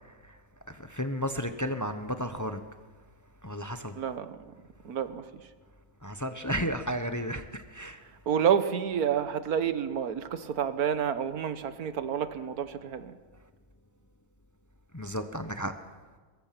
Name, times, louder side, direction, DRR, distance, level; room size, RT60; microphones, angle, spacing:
voice 1, 0.7-2.6 3.4-3.9 6.0-8.0 14.9-15.7, equal, 15° left, 8 dB, 0.8 m, -33 dB
voice 2, 3.9-4.5 4.8-5.3 8.3-13.2, right 8 dB, 80° right, 12 dB, 1.6 m, -29 dB
23.5 x 21.5 x 5.9 m, 1.4 s
omnidirectional pair, 1.6 m